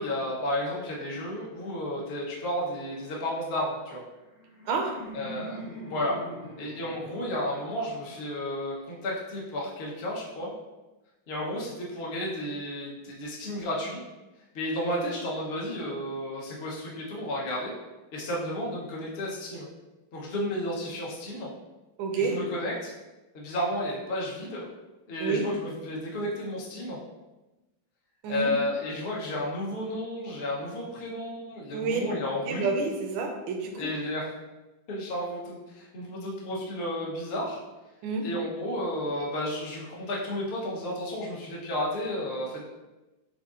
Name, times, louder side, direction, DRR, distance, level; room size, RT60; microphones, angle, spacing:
voice 1, 0.0-4.0 5.1-5.6 5.9-6.2 6.6-10.5 11.3-14.0 14.5-17.7 18.1-19.7 20.1-21.5 22.2-22.9 23.3-24.7 25.1-27.0 28.3-32.7 33.7-34.3 34.9-37.6 38.2-42.7, left 1 dB, 50° left, -4 dB, 0.8 m, -32 dB
Laughter, 4.0-9.1, equal, 90° left, 2.6 m, -44 dB
voice 2, 4.6-5.0 22.0-22.4 25.2-25.5 28.2-28.5 31.7-32.0 32.4-33.9 38.0-38.3, right 4 dB, 75° right, 3 dB, 1.4 m, -29 dB
7.3 x 2.5 x 2.5 m, 1.1 s
omnidirectional pair, 2.3 m